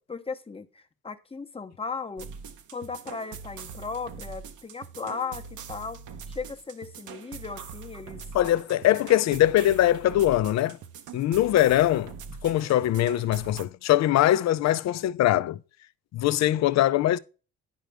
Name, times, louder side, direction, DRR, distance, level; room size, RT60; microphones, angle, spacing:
voice 1, 0.1-2.3 2.7-6.0 6.3-8.2, left 5 dB, 20° left, 0.8 m, -36 dB
sound 1, 2.2-13.6, right 6 dB, 75° right, 0.8 m, -43 dB
voice 2, 8.3-10.8 11.1-12.1 12.4-15.6 16.1-17.2, left 13 dB, 60° left, 0.5 m, -22 dB
10.5 x 4.9 x 3.4 m
cardioid pair, 90°, 30 cm